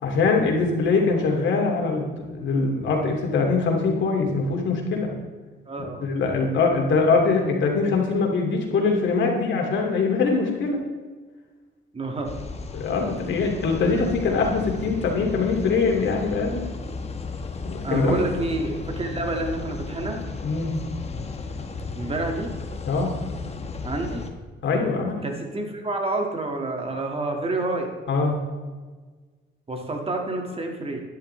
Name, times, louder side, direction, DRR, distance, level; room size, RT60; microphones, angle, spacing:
voice 1, 0.0-5.1 5.8-10.8 12.7-16.6 17.6-18.2 20.4-20.8 22.8-23.1 24.6-25.2 28.1-28.4, left 4 dB, 70° left, 1 dB, 2.7 m, -23 dB
voice 2, 5.7-6.0 11.9-12.3 17.8-20.2 21.9-22.5 23.8-24.2 25.2-27.9 29.7-31.0, right 2 dB, 30° right, 2 dB, 2.2 m, -28 dB
sound 1, 12.2-24.3, left 4 dB, 30° left, 1.2 m, -34 dB
11.5 x 10.5 x 3.4 m, 1.4 s
cardioid pair, 90°, 20 cm